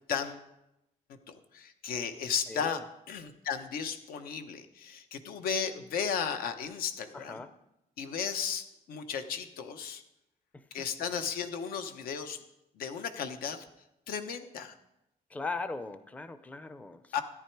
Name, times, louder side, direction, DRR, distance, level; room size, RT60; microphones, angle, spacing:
voice 1, 0.1-0.4 1.5-7.4 8.0-10.0 10.7-12.4 12.8-13.6 14.1-14.8 17.1-17.2, left 7 dB, 85° left, 8 dB, 1.1 m, -34 dB
voice 2, 2.5-2.8 7.1-7.5 10.5-10.9 15.3-17.2, left 3 dB, 10° left, 12 dB, 0.5 m, -39 dB
13.5 x 10.0 x 4.6 m, 0.90 s
cardioid pair, 150°, 15 cm